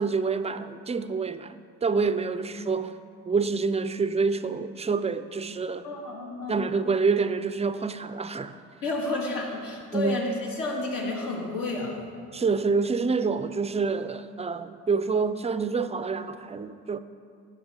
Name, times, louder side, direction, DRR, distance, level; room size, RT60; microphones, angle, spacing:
voice 1, 0.0-3.0 3.3-5.9 6.5-8.6 9.9-10.2 12.3-17.0, right 4 dB, 20° right, 0.4 m, -27 dB
voice 2, 5.8-6.7 8.8-12.1, left 2 dB, 70° left, 2.1 m, -31 dB
10.5 x 5.9 x 5.2 m
supercardioid pair, 70°, 35 cm